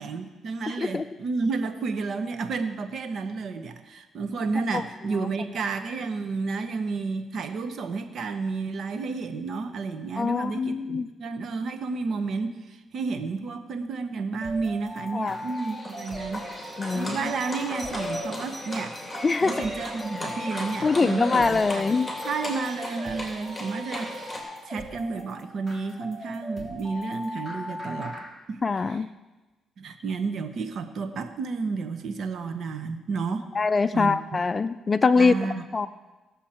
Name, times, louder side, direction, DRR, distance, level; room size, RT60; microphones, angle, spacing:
voice 1, 0.0-16.5 16.9-18.9 19.4-21.9 22.2-24.3 24.7-28.2 28.5-28.6 28.9-29.0 29.8-33.5 33.9-34.4 35.2-35.6, right 4 dB, 60° right, 8 dB, 0.9 m, -31 dB
voice 2, 0.7-1.0 4.7-4.8 5.1-5.3 10.2-11.1 15.1-15.4 16.8-17.2 19.2-19.6 20.8-22.1 28.6-29.1 33.5-35.3 35.7-35.9, left 4 dB, 30° left, 13 dB, 0.3 m, -23 dB
sound 1, 14.4-28.3, equal, 15° right, 3.2 m, -39 dB
Livestock farm animals working animals, 15.3-24.4, left 1 dB, 5° left, 3.0 m, -36 dB
17.5 x 7.1 x 4.4 m, 1.2 s
cardioid pair, 90°, 0 cm